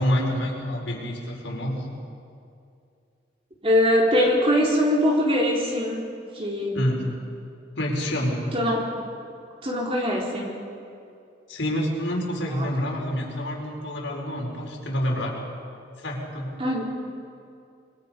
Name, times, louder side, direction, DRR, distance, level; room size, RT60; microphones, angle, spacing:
voice 1, 0.0-1.9 6.7-7.2 7.8-8.4 11.5-15.4 16.0-16.5, equal, 85° left, -2 dB, 5.2 m, -27 dB
voice 2, 3.6-6.0 6.3-6.9 8.5-8.8 9.6-10.5 16.6-16.8, equal, 30° right, -2 dB, 4.1 m, -22 dB
26.5 x 23.5 x 5.4 m, 2.4 s
head